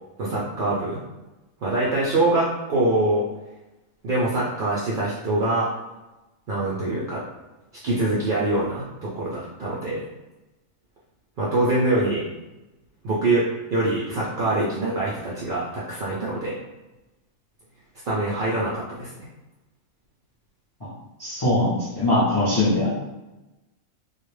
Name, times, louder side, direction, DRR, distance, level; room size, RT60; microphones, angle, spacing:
voice 1, 0.2-1.0 1.6-3.3 4.0-5.7 6.5-7.2 7.8-10.1 11.4-12.3 13.0-16.6 18.1-19.1, right 2 dB, 70° right, -6 dB, 0.5 m, -24 dB
voice 2, 21.2-23.1, left 1 dB, 35° left, -8 dB, 0.3 m, -22 dB
2.3 x 2.1 x 3.1 m, 1.0 s
omnidirectional pair, 1.5 m